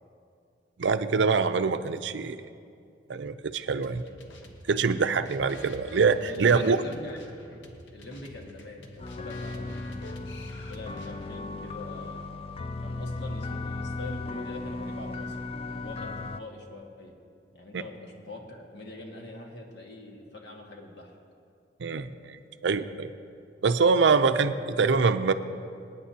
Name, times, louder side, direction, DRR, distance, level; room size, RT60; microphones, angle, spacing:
voice 1, 0.8-2.4 3.1-4.0 4.7-6.8 17.7-17.8 21.8-22.4 22.6-23.1 23.6-25.3, right 5 dB, 70° right, 11 dB, 0.5 m, -24 dB
sound 1, 3.8-11.4, left 1 dB, 80° left, 1.1 m, -50 dB
voice 2, 6.3-7.2 7.5-7.6 7.9-10.3 10.7-12.3 12.8-17.1 17.5-21.2, left 2 dB, 65° left, 0 dB, 1.7 m, -43 dB
sound 2, 9.0-16.4, left 2 dB, 30° left, 0.4 m, -36 dB
25.5 x 9.4 x 2.8 m, 2.4 s
head